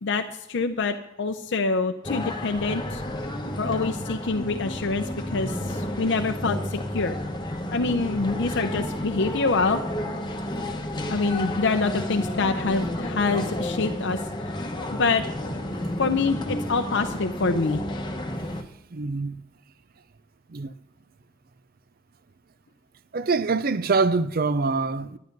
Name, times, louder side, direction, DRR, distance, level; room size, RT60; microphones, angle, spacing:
voice 1, 0.0-3.0 3.6-7.2 7.7-9.8 11.1-15.3 16.0-17.8, left 3 dB, 60° left, 0.6 m, -26 dB
sound 1, 2.0-18.6, left 1 dB, 20° left, 1.0 m, -31 dB
voice 2, 18.9-19.4 20.5-20.7 23.1-25.2, right 4 dB, 45° right, 0.5 m, -24 dB
12.0 x 9.5 x 5.3 m
head